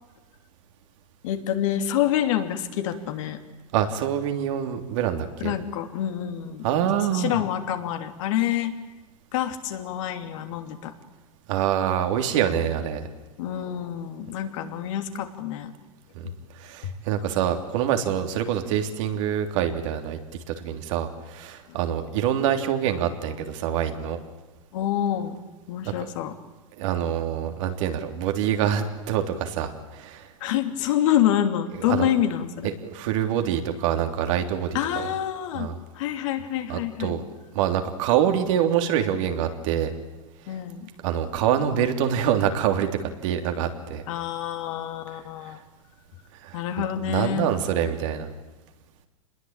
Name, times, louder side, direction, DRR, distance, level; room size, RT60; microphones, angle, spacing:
voice 1, 1.2-3.4 5.4-6.7 7.1-8.7 9.3-10.9 13.4-15.7 21.7-21.8 24.7-25.4 25.7-26.3 30.4-32.7 34.7-35.7 35.9-37.2 40.5-40.9 44.1-45.6 46.5-47.5, left 11 dB, 70° left, 6 dB, 3.0 m, -27 dB
voice 2, 3.7-5.5 6.6-7.4 11.5-13.1 16.1-16.3 16.6-20.2 20.6-24.2 25.8-25.9 26.8-30.3 31.9-32.1 32.6-35.1 35.5-35.7 36.7-37.2 37.5-39.9 41.0-44.0 46.4-46.6 47.0-48.3, right 9 dB, 65° right, 5 dB, 3.3 m, -25 dB
27.0 x 21.0 x 9.0 m, 1.1 s
hypercardioid pair, 110°, 17 cm